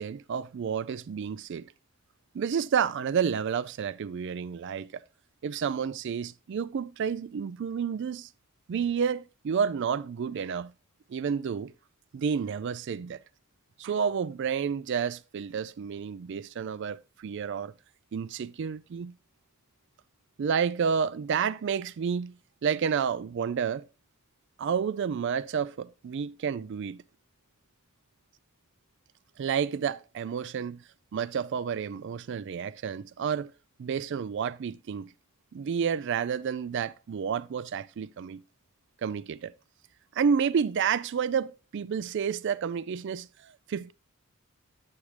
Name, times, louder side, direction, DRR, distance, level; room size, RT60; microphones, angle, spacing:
voice 1, 0.0-1.7 2.3-5.0 5.4-8.3 8.7-10.7 11.1-11.7 12.1-13.2 13.8-17.7 18.1-19.1 20.4-22.3 22.6-23.8 24.6-27.0 29.4-30.8 31.1-33.5 33.8-35.1 35.5-38.4 39.0-39.5 40.1-43.9, right 7 dB, 55° right, 0.3 m, -30 dB
8.4 x 6.2 x 3.2 m
head